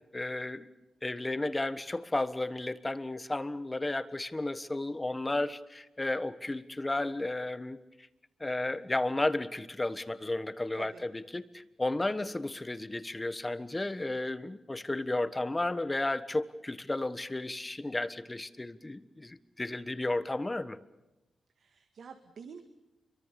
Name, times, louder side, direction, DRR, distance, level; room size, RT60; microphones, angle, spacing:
voice 1, 0.1-0.7 1.0-7.8 8.4-20.8, left 2 dB, 15° left, 13 dB, 1.4 m, -33 dB
voice 2, 21.6-22.6, right 6 dB, 70° right, 7 dB, 2.0 m, -48 dB
29.5 x 24.0 x 6.9 m, 0.99 s
wide cardioid pair, 145°, 0 cm